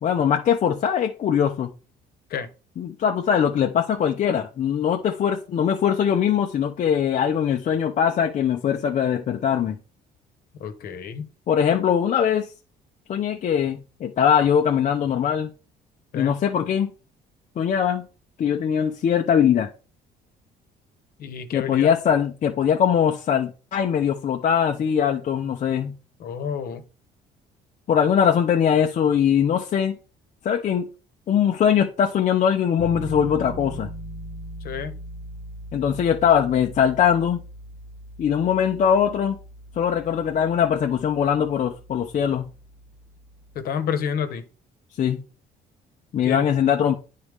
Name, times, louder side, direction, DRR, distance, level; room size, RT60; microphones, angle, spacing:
voice 1, 0.0-1.7 2.8-9.8 11.5-12.5 13.1-15.5 16.1-16.9 17.6-18.1 18.4-19.7 21.5-25.9 27.9-30.0 30.4-30.9 31.3-33.9 35.7-37.4 38.2-39.4 39.8-42.4 45.0-45.2 46.1-47.0, left 8 dB, 45° left, 0.7 m, -21 dB
voice 2, 10.6-11.3 16.1-16.3 21.2-21.9 26.2-26.8 34.6-34.9 43.5-44.5 46.2-46.4, left 7 dB, 65° left, 1.1 m, -29 dB
Piano, 32.8-43.6, right 1 dB, 50° right, 1.7 m, -40 dB
9.6 x 4.2 x 3.5 m
cardioid pair, 110°, 17 cm